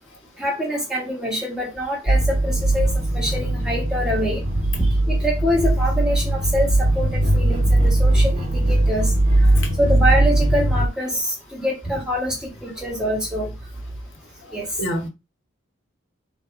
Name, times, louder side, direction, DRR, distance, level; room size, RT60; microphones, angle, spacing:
voice 1, 0.4-9.1 9.8-13.5 14.5-14.7, equal, 5° right, 1.2 m, -25 dB
sound 1, 2.1-10.9, right 1 dB, 30° right, 0.9 m, -19 dB
voice 2, 14.4-15.1, equal, 55° left, 0.9 m, -29 dB
3.4 x 2.6 x 4.4 m
head